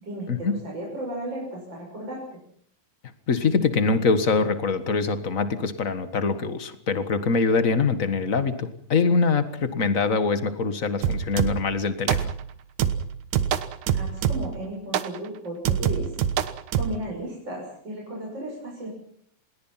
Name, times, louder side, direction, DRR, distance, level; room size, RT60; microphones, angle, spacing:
voice 1, 0.0-2.4 13.9-16.1 16.7-18.9, right 1 dB, 30° right, -2 dB, 7.4 m, -35 dB
voice 2, 3.3-12.3, left 4 dB, 55° left, 10 dB, 0.8 m, -24 dB
sound 1, 11.0-11.8 12.1-12.5 12.8-14.6 14.9-15.2 15.7-17.0, right 9 dB, 65° right, 2.4 m, -25 dB
27.0 x 21.5 x 5.8 m, 0.64 s
omnidirectional pair, 4.1 m